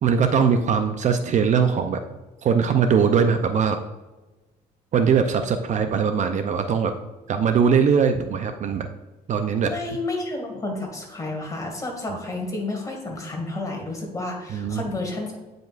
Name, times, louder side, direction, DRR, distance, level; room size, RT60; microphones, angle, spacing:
voice 1, 0.0-2.0 2.4-3.8 4.9-6.9 7.3-8.9 9.3-9.7 14.5-14.8, right 6 dB, 45° right, 7 dB, 0.5 m, -21 dB
voice 2, 9.6-15.4, left 2 dB, 20° left, 1 dB, 2.1 m, -31 dB
9.0 x 5.1 x 2.4 m, 1.1 s
cardioid pair, 110°, 17 cm